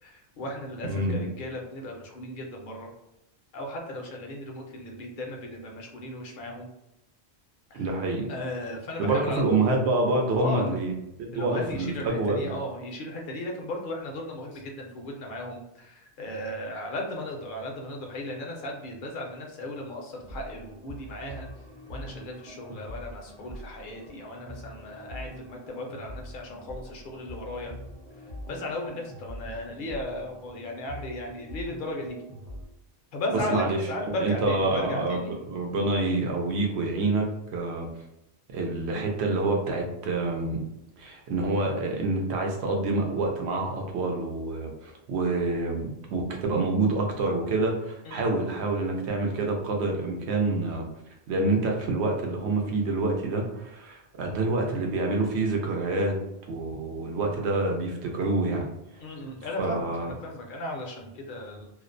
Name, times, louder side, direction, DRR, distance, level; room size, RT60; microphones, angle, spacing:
voice 1, 0.0-2.9 3.5-6.7 7.7-7.9 8.3-9.6 10.3-10.8 11.3-21.5 21.9-27.7 28.2-32.2 33.1-35.3 48.0-48.3 59.0-61.7, left 1 dB, 60° left, 1 dB, 0.6 m, -36 dB
voice 2, 0.8-1.3 7.7-8.3 9.0-10.9 11.2-12.5 33.5-37.3 37.5-37.9 38.5-40.6 41.0-50.9 51.3-56.2 56.5-58.7 59.6-60.1, right 2 dB, 80° right, 1 dB, 0.9 m, -27 dB
sound 1, 20.2-32.6, equal, 45° right, 0.6 m, -43 dB
2.4 x 2.0 x 2.5 m, 0.84 s
omnidirectional pair, 1.1 m